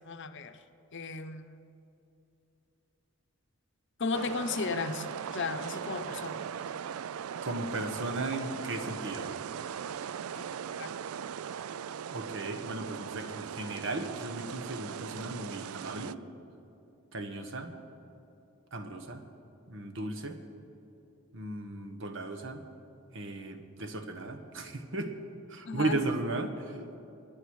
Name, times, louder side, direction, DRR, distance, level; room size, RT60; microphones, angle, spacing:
voice 1, 0.1-0.6 0.9-1.5 4.0-6.4 10.4-10.5 10.8-10.9 25.7-26.0, left 4 dB, 60° left, 9 dB, 0.8 m, -35 dB
sound 1, 4.1-16.1, right 8 dB, 85° right, 0.4 m, -39 dB
voice 2, 7.4-9.3 12.1-16.2 17.1-17.7 18.7-19.2 19.7-20.4 21.3-22.6 23.1-25.1 25.5-27.0, right 2 dB, 60° right, 7 dB, 1.3 m, -36 dB
27.0 x 10.5 x 4.8 m, 2.8 s
head